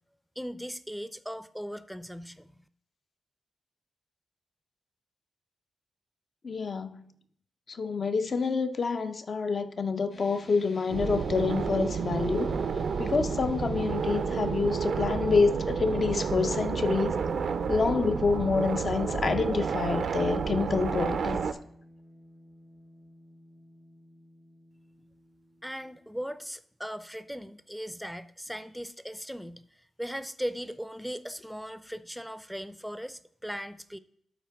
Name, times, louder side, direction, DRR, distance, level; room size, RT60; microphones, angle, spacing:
voice 1, 0.4-2.6 25.6-29.6 30.0-34.0, equal, ahead, 0.5 m, -38 dB
voice 2, 6.4-7.1 7.7-12.6 13.0-17.2 17.7-21.4, left 4 dB, 50° left, 0.6 m, -27 dB
sound 1, 10.1-26.5, equal, 70° left, 2.9 m, -53 dB
sound 2, 10.9-21.5, right 5 dB, 75° right, 0.5 m, -30 dB
12.0 x 4.5 x 3.5 m
cardioid pair, 75°, 0 cm